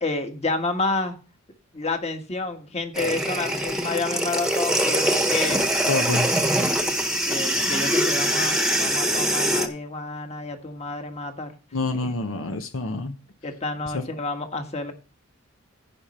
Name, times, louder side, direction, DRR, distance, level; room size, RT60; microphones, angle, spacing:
voice 1, 0.0-1.1 1.7-5.6 7.2-11.5 12.0-12.1 13.4-14.9, left 3 dB, 35° left, 5 dB, 1.6 m, -29 dB
sound 1, 2.9-9.7, right 1 dB, 5° right, 1.2 m, -23 dB
voice 2, 5.9-6.3 11.7-13.2 13.9-14.0, left 3 dB, 75° left, 8 dB, 1.0 m, -27 dB
15.0 x 5.3 x 4.3 m, 0.35 s
head